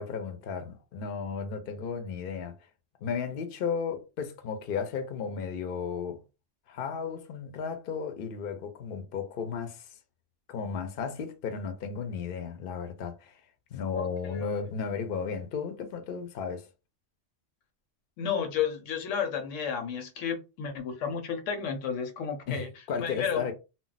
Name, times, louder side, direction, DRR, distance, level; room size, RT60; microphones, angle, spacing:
voice 1, 0.0-2.6 3.0-6.2 6.7-9.9 10.5-13.4 13.7-16.7 22.5-23.5, left 6 dB, 55° left, 0.7 m, -34 dB
voice 2, 13.9-14.5 18.2-22.7 23.0-23.5, left 7 dB, 80° left, 1.0 m, -32 dB
2.3 x 2.0 x 3.9 m
omnidirectional pair, 1.3 m